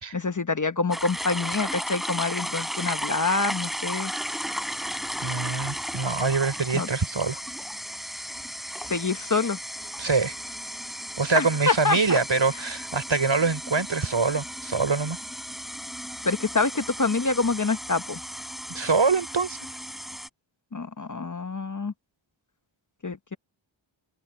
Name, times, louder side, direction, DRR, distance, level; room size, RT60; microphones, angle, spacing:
voice 1, 0.1-4.1 6.7-6.9 8.9-9.6 11.3-12.2 16.2-18.2 20.7-21.9 23.0-23.4, left 3 dB, 40° left, 1.1 m, -26 dB
sound 1, 0.9-20.3, equal, ahead, 3.5 m, -35 dB
voice 2, 5.2-7.4 10.0-10.3 11.2-15.2 18.7-19.6, right 4 dB, 65° right, 4.4 m, -24 dB
wide cardioid pair, 60°, 48 cm